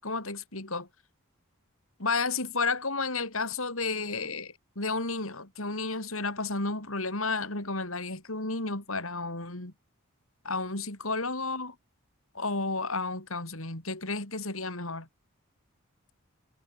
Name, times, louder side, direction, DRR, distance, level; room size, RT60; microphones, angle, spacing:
voice 1, 0.0-0.9 2.0-9.7 10.4-11.8 12.3-15.1, left 3 dB, 65° left, 5.8 m, -32 dB
head